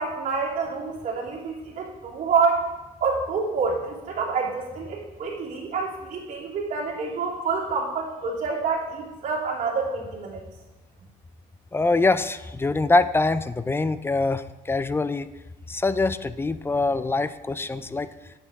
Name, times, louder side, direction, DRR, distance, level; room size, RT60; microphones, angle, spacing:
voice 1, 0.0-2.6 3.0-10.4, right 5 dB, 50° right, -4 dB, 2.8 m, -27 dB
voice 2, 11.7-15.3 15.7-18.1, left 3 dB, 15° left, 14 dB, 0.4 m, -24 dB
9.5 x 8.0 x 3.5 m, 1.1 s
cardioid pair, 110°, 17 cm